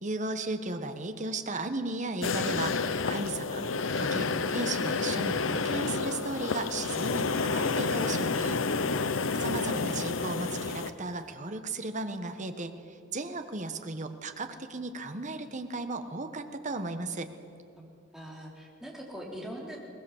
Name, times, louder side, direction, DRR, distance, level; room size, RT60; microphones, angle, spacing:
voice 1, 0.0-8.6 9.4-17.3, right 2 dB, 40° right, 8 dB, 1.3 m, -35 dB
sound 1, 2.2-10.9, left 4 dB, 80° left, 0.9 m, -30 dB
voice 2, 18.1-19.8, equal, ahead, -2 dB, 3.6 m, -43 dB
22.0 x 19.5 x 7.3 m, 2.5 s
head